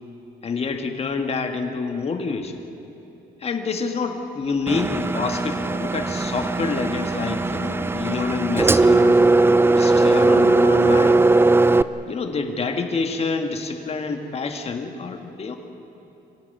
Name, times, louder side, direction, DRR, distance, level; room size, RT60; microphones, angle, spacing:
voice 1, 0.4-2.6 3.4-9.2 9.7-11.2 12.1-15.6, left 4 dB, 35° left, 5 dB, 1.9 m, -27 dB
Engine, 4.7-11.8, right 2 dB, 15° right, 0.5 m, -18 dB
26.0 x 16.5 x 9.4 m, 2.9 s
cardioid pair, 125°, 18 cm